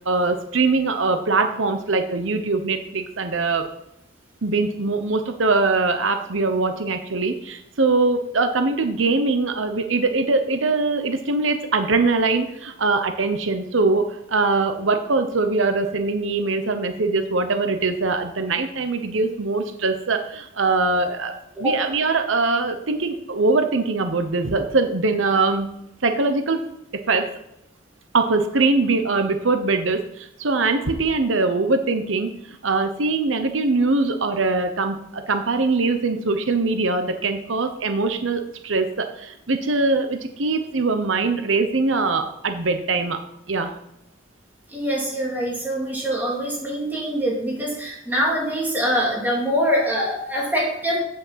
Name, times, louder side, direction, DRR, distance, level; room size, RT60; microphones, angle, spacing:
voice 1, 0.0-3.7 4.4-21.3 21.6-25.7 26.0-26.6 27.1-27.3 28.1-43.2 43.5-43.7, right 3 dB, 90° right, 7 dB, 1.0 m, -22 dB
voice 2, 44.7-51.0, equal, 10° right, -4 dB, 3.4 m, -24 dB
8.5 x 6.4 x 7.5 m, 0.82 s
head